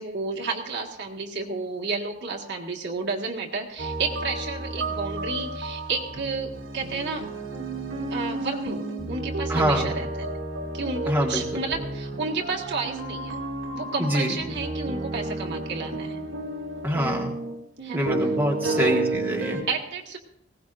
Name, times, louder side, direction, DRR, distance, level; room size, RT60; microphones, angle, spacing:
voice 1, 0.0-7.3 8.1-10.3 10.7-13.4 13.7-16.2 17.8-18.1 18.6-19.0 19.7-20.2, right 4 dB, 60° right, 0 dB, 1.8 m, -31 dB
sound 1, 3.8-19.6, right 2 dB, 85° right, 2.3 m, -31 dB
voice 2, 9.5-9.9 11.1-11.4 14.0-14.3 16.8-17.3 17.9-19.6, equal, 10° right, -1 dB, 1.6 m, -25 dB
20.0 x 17.0 x 2.5 m, 0.78 s
head